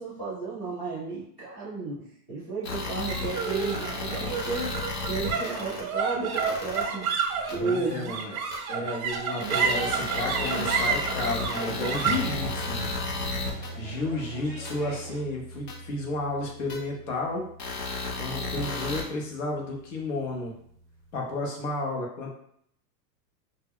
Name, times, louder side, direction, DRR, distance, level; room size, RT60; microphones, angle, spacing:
voice 1, 0.0-4.8 5.0-7.2 7.5-8.2, right 4 dB, 10° left, -14 dB, 0.4 m, -33 dB
sound 1, 2.6-5.8 6.3-6.8 7.5-7.6 8.5-8.6 9.4-13.7 14.6-14.7 15.7-15.8 16.7-16.8 17.6-19.0, left 3 dB, 75° left, 0.9 m, -33 dB
sound 2, 3.1-19.6, right 5 dB, 60° right, 0.5 m, -32 dB
voice 2, 7.6-8.4 8.7-12.9 13.8-17.4 18.2-20.5 21.1-22.3, left 2 dB, 50° left, -1 dB, 0.7 m, -32 dB
sound 3, 9.7-15.2, right 2 dB, 30° right, 0.7 m, -45 dB
2.2 x 2.0 x 3.5 m, 0.69 s
supercardioid pair, 180°, 49 cm